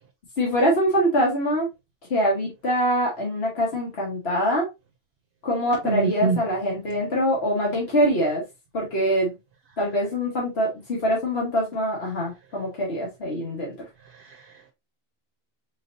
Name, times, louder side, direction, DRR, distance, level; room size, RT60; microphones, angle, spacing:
voice 1, 0.4-1.7 2.1-4.7 5.4-8.4 8.7-9.3 9.8-13.7, equal, 90° left, 1.6 m, -24 dB
voice 2, 5.8-6.4 14.2-14.7, right 4 dB, 65° right, 0.7 m, -26 dB
4.1 x 3.8 x 2.6 m
omnidirectional pair, 1.0 m